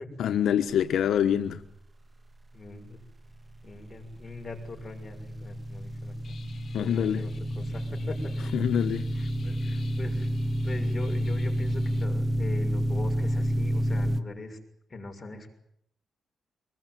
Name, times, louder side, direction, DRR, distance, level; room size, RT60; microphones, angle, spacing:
voice 1, 0.2-1.6 6.7-7.2 8.5-9.1, left 9 dB, 80° left, 8 dB, 1.3 m, -25 dB
voice 2, 2.5-3.0 3.6-6.4 6.8-7.3 7.5-8.5 9.1-10.3 10.6-14.6 14.9-15.5, left 2 dB, 25° left, 2 dB, 6.5 m, -41 dB
sound 1, 3.4-14.2, equal, 25° right, 1.6 m, -30 dB
sound 2, 6.2-12.0, left 5 dB, 50° left, 3.6 m, -47 dB
24.0 x 21.0 x 9.3 m, 0.73 s
wide cardioid pair, 150°, 0 cm